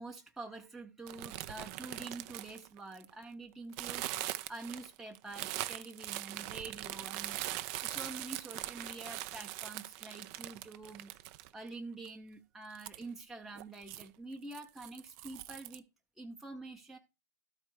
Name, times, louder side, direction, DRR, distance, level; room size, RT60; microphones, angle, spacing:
voice 1, 0.0-11.1 11.5-15.8 16.2-17.0, right 3 dB, 5° right, 1 dB, 0.8 m, -47 dB
sound 1, 1.1-3.2 3.7-11.7 12.0-12.1 12.7-13.0 13.5-14.1 14.5-15.8, right 15 dB, 45° right, 0.5 m, -41 dB
12.5 x 4.6 x 4.7 m, 0.28 s
hypercardioid pair, 105°, 10 cm